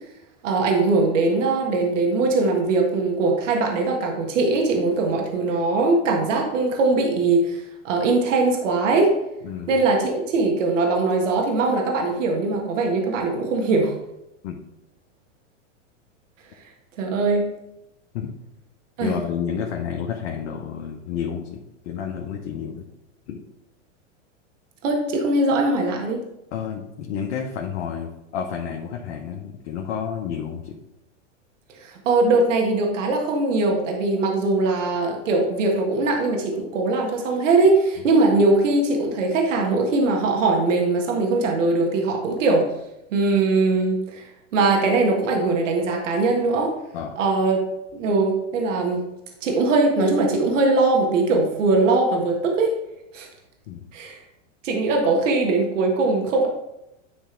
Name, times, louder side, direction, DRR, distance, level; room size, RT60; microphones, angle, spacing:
voice 1, 0.4-9.1 9.7-13.9 17.0-17.5 19.0-19.1 24.8-26.2 31.8-42.7 43.1-46.8 47.2-47.6 47.9-49.0 49.4-52.7 53.1-53.3 53.9-54.2 54.6-56.5, right 3 dB, 75° right, 1 dB, 1.6 m, -21 dB
voice 2, 19.0-22.9 23.3-23.4 26.5-30.8 46.9-47.2 53.7-53.8, left 7 dB, 60° left, 0 dB, 1.1 m, -30 dB
10.0 x 3.5 x 4.5 m, 0.90 s
hypercardioid pair, 120°, 38 cm